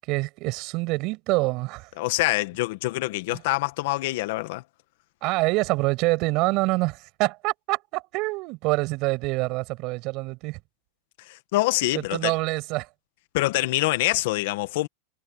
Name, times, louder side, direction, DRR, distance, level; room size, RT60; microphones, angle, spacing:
voice 1, 0.1-1.9 3.3-3.4 5.2-10.6 11.9-12.9, right 23 dB, 45° right, 6.3 m, -26 dB
voice 2, 2.0-4.6 11.3-12.3 13.3-14.9, left 19 dB, 60° left, 1.6 m, -25 dB
supercardioid pair, 145°, 0 cm